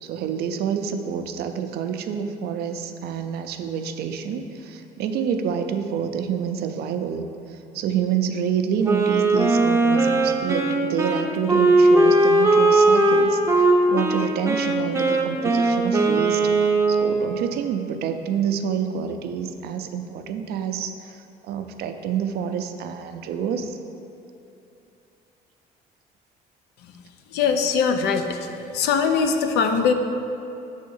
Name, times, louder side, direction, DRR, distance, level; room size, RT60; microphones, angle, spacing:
voice 1, 0.0-7.2 7.5-21.2 21.4-23.8, right 7 dB, 70° right, 7 dB, 0.5 m, -28 dB
Wind instrument woodwind instrument, 8.8-17.3, right 2 dB, 15° right, 0.6 m, -19 dB
voice 2, 27.3-28.4 28.7-29.9, left 6 dB, 80° left, 6 dB, 0.5 m, -21 dB
6.4 x 3.5 x 5.4 m, 2.7 s
cardioid pair, 110°, 17 cm